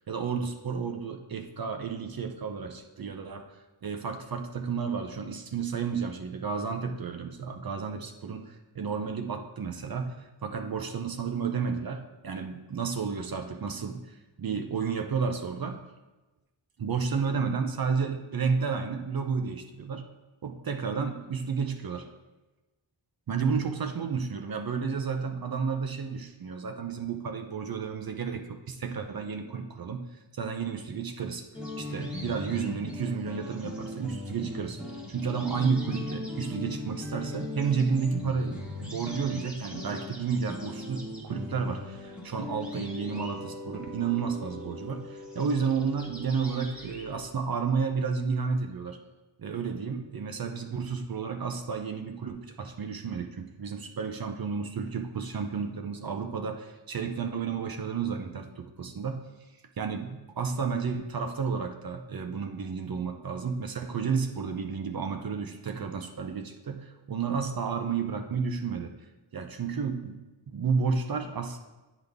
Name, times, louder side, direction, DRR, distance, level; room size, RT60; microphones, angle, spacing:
voice 1, 0.1-3.5 3.8-15.8 16.8-20.1 20.4-22.1 23.3-31.5 31.8-34.8 35.1-49.0 49.4-59.3 59.8-68.9 69.3-70.2 70.5-71.6, right 5 dB, 50° right, 5 dB, 0.7 m, -31 dB
sound 1, 31.5-47.3, left 2 dB, ahead, 1.3 m, -39 dB
9.3 x 3.9 x 3.5 m, 1.1 s
cardioid pair, 75°, 48 cm